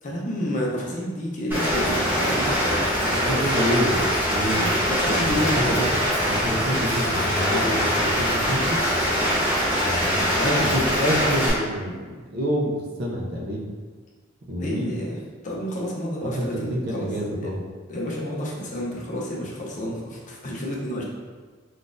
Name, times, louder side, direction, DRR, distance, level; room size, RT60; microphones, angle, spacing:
voice 1, 0.0-2.6 4.8-6.0 7.5-7.8 14.6-15.2 15.4-17.1 17.4-17.5 17.9-21.0, equal, 40° left, -3 dB, 0.6 m, -29 dB
Rain, 1.5-11.5, equal, 10° right, 0.9 m, -23 dB
voice 2, 3.0-4.7 5.0-5.8 6.3-8.8 10.0-13.7 14.5-15.0 16.2-17.6, equal, 50° right, -3 dB, 0.5 m, -28 dB
3.9 x 2.4 x 2.5 m, 1.5 s
head